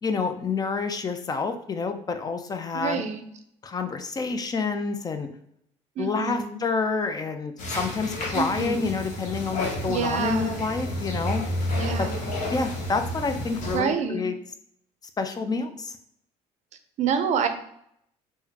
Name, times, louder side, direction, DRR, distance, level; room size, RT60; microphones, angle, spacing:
voice 1, 0.0-3.0 3.6-5.3 6.0-11.4 12.0-12.1 12.5-14.3 15.2-16.0, left 4 dB, 30° left, 8 dB, 0.4 m, -28 dB
voice 2, 2.7-3.2 6.0-6.7 8.3-8.9 9.9-10.7 11.7-12.3 13.6-14.3 17.0-17.5, right 6 dB, 60° right, 8 dB, 0.5 m, -28 dB
sound 1, 7.6-13.8, left 1 dB, 65° left, 0.9 m, -31 dB
3.6 x 2.1 x 2.8 m, 0.70 s
supercardioid pair, 80°, 14 cm